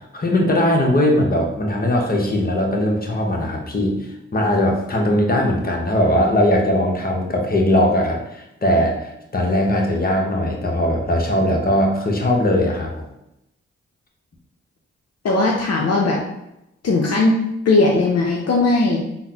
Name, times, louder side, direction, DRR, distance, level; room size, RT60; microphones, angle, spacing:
voice 1, 0.1-13.0, left 1 dB, 30° left, 0 dB, 0.9 m, -19 dB
voice 2, 15.2-16.2 16.8-17.4 17.7-19.2, left 2 dB, 55° left, -1 dB, 0.6 m, -18 dB
3.8 x 2.1 x 2.8 m, 0.85 s
supercardioid pair, 40°, 29 cm